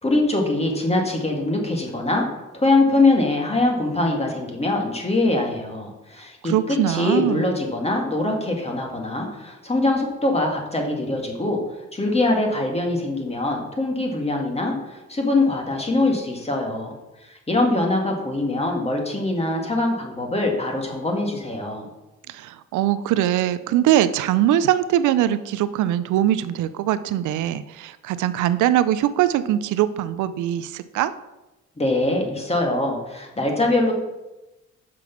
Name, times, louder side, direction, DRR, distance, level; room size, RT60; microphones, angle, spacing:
voice 1, 0.0-2.3 2.5-11.6 11.9-17.0 17.2-21.9 31.8-33.9, left 2 dB, 20° left, 1 dB, 1.9 m, -23 dB
voice 2, 6.4-7.5 22.3-31.1, right 12 dB, 80° right, 13 dB, 0.5 m, -22 dB
6.1 x 5.9 x 5.8 m, 1.0 s
cardioid pair, 90°, 30 cm